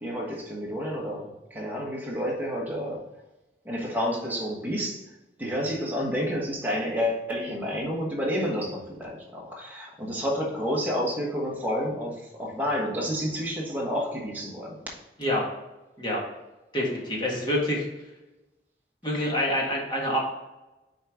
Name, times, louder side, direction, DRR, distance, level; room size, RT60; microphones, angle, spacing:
voice 1, 0.0-3.0 3.6-5.0 5.4-14.8, equal, 10° right, -3 dB, 1.3 m, -30 dB
voice 2, 16.7-17.8 19.0-20.2, left 1 dB, 25° left, -3 dB, 1.7 m, -26 dB
6.5 x 4.6 x 3.6 m, 1.0 s
head